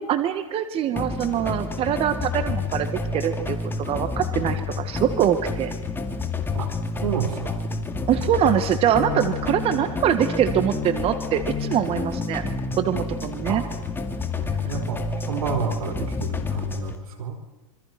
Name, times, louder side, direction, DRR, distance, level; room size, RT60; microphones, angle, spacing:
voice 1, 0.0-2.9 3.1-5.7 8.1-12.4 12.8-13.6, right 10 dB, 35° right, 10 dB, 1.8 m, -23 dB
sound 1, 1.0-16.9, left 4 dB, 10° left, 2.4 m, -29 dB
voice 2, 7.0-7.6 9.1-9.2 13.5-13.8 14.4-17.4, right 7 dB, 90° right, 7 dB, 5.1 m, -31 dB
27.0 x 24.5 x 6.1 m, 1.0 s
supercardioid pair, 130°, 18 cm